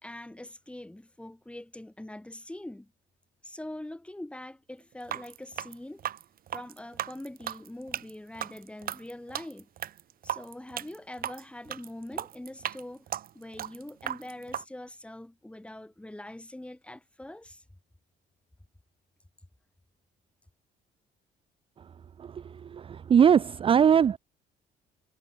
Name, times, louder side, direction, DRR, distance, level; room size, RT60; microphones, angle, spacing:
voice 1, 0.0-2.9 3.4-6.0 6.5-9.7 10.2-17.6, left 1 dB, 5° left, 5.8 m, -43 dB
sound 1, 5.0-14.6, right 11 dB, 60° right, 5.3 m, -36 dB
voice 2, 22.7-24.2, right 8 dB, 30° right, 0.5 m, -20 dB
cardioid pair, 110°, 17 cm